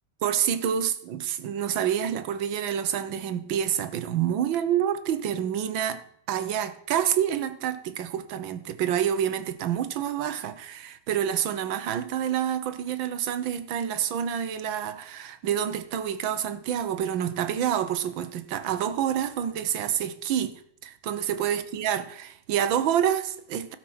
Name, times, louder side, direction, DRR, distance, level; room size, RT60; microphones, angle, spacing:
voice 1, 0.2-6.0 6.3-23.8, right 9 dB, 70° right, 1.6 m, -28 dB
16.5 x 5.9 x 6.2 m
omnidirectional pair, 2.3 m